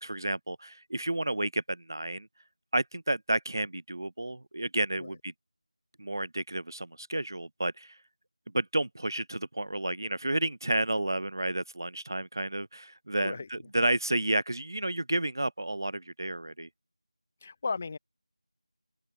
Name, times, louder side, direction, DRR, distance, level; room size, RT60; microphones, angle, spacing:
voice 1, 0.0-2.3 2.7-5.3 6.0-8.0 8.5-16.7, right 1 dB, 35° right, 0.5 m, -31 dB
voice 2, 17.4-18.0, left 4 dB, 15° left, 1.4 m, -35 dB
open air
figure-of-eight pair, 180°, 3 cm